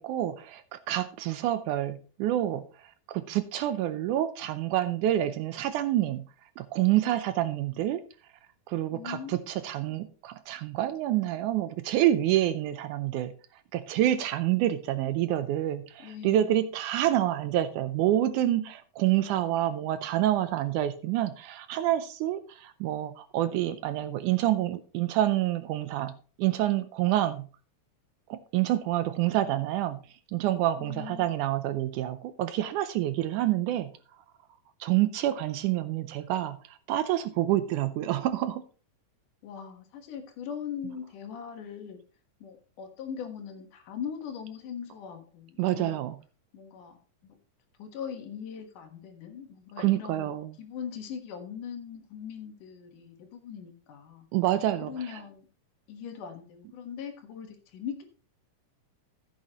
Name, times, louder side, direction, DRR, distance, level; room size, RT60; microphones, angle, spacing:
voice 1, 0.0-6.2 6.6-8.0 8.7-13.3 13.7-26.1 26.4-27.5 28.3-30.0 30.3-33.9 34.8-38.6 45.6-46.2 49.8-50.5 54.3-54.9, right 13 dB, 80° right, 12 dB, 1.9 m, -27 dB
voice 2, 8.9-9.4 9.9-10.0 16.0-16.4 19.2-19.7 30.8-31.3 39.4-42.0 42.4-46.1 46.5-47.4 47.8-50.3 50.6-54.3 54.8-55.5 55.9-58.0, left 7 dB, 70° left, 5 dB, 2.9 m, -40 dB
14.5 x 8.4 x 2.9 m, 0.39 s
omnidirectional pair, 3.9 m